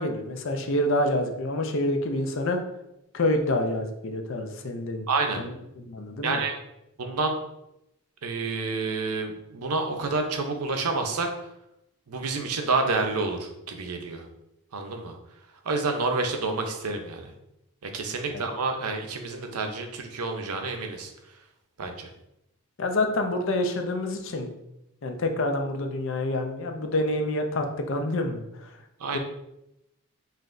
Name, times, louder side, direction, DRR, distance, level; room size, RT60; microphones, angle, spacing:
voice 1, 0.0-2.6 3.1-5.1 5.3-6.4 22.8-24.5 25.0-28.4 29.1-29.2, left 1 dB, 60° left, 5 dB, 0.5 m, -27 dB
voice 2, 5.1-5.4 6.2-6.6 7.0-7.4 8.2-11.3 12.1-14.3 14.7-15.2 15.6-17.3 17.8-21.1 21.8-22.1 29.0-29.2, right 3 dB, 90° right, 4 dB, 0.6 m, -29 dB
5.7 x 2.5 x 2.5 m, 0.86 s
head